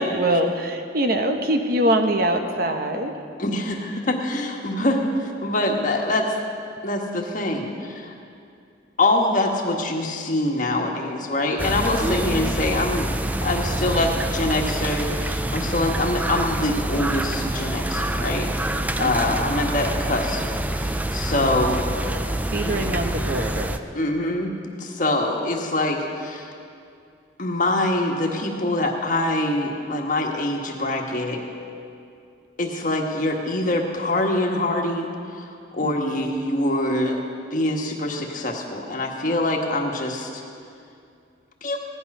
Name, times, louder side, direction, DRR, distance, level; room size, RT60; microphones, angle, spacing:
voice 1, 0.0-3.1 19.0-19.5 21.3-21.8 22.5-23.8 35.8-36.2, right 1 dB, 50° right, 5 dB, 1.0 m, -24 dB
voice 2, 3.4-6.3 6.8-8.1 9.0-13.1 13.4-18.5 19.0-20.4 20.7-21.8 22.6-22.8 23.9-24.5 24.8-26.5 27.4-31.4 32.6-37.2 37.5-40.4 41.6-41.8, left 1 dB, 45° left, 1 dB, 1.4 m, -24 dB
sound 1, 11.6-23.8, right 1 dB, 10° right, 0.4 m, -26 dB
17.0 x 11.0 x 5.4 m, 2.4 s
head